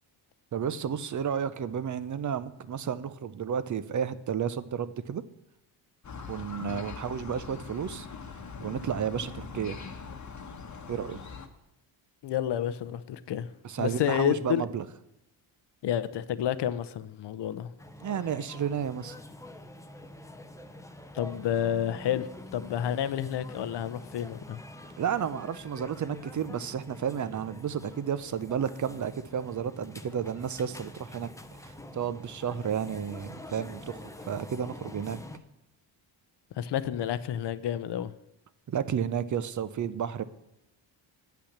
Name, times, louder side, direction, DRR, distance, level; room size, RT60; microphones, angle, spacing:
voice 1, 0.5-5.2 6.3-8.1 8.6-9.8 10.9-11.2 13.6-14.9 18.0-19.2 25.0-31.3 31.6-35.2 38.7-40.2, right 8 dB, 40° right, 15 dB, 0.6 m, -32 dB
sound 1, 6.0-11.5, left 5 dB, 35° left, 1.1 m, -42 dB
voice 2, 12.2-13.5 13.8-14.6 15.8-17.7 21.1-24.6 36.6-38.1, left 10 dB, 55° left, 14 dB, 0.7 m, -30 dB
sound 2, 17.8-35.4, left 1 dB, 5° left, 0.6 m, -46 dB
8.5 x 5.8 x 7.3 m, 0.90 s
cardioid pair, 85°, 49 cm